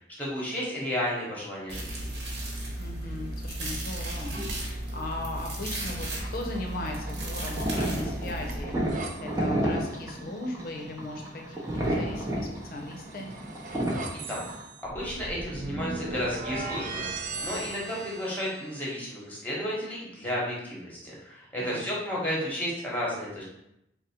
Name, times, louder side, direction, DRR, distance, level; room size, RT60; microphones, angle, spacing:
voice 1, 0.2-1.8 14.3-14.4 14.8-17.1 17.4-23.4, equal, 10° left, -5 dB, 1.1 m, -32 dB
sound 1, 1.7-8.6, right 1 dB, 70° right, 1.1 m, -35 dB
voice 2, 2.8-13.3 21.6-21.9, left 2 dB, 55° left, 1 dB, 0.7 m, -38 dB
sound 2, 4.4-4.9 6.7-9.1 12.6-19.0, right 2 dB, 50° right, 0.4 m, -38 dB
sound 3, 6.2-14.6, right 1 dB, 20° right, 0.7 m, -32 dB
3.9 x 2.1 x 4.2 m, 0.82 s
head